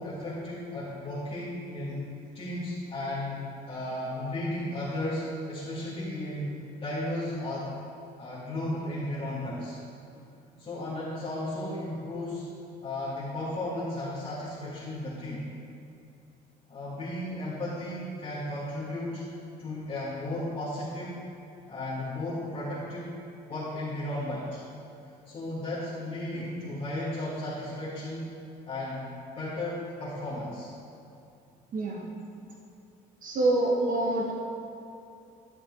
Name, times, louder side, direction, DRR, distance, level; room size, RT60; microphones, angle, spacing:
voice 1, 0.0-7.7 8.2-9.8 10.6-12.5 12.8-15.4 16.7-19.3 19.6-21.2 21.7-23.2 23.5-24.6 25.3-28.3 28.7-29.1 29.4-30.7, left 1 dB, 35° left, -10 dB, 1.8 m, -34 dB
voice 2, 31.7-32.1 33.2-34.3, right 2 dB, 50° right, -2 dB, 1.1 m, -26 dB
12.0 x 5.8 x 3.6 m, 2.6 s
cardioid pair, 110°, 17 cm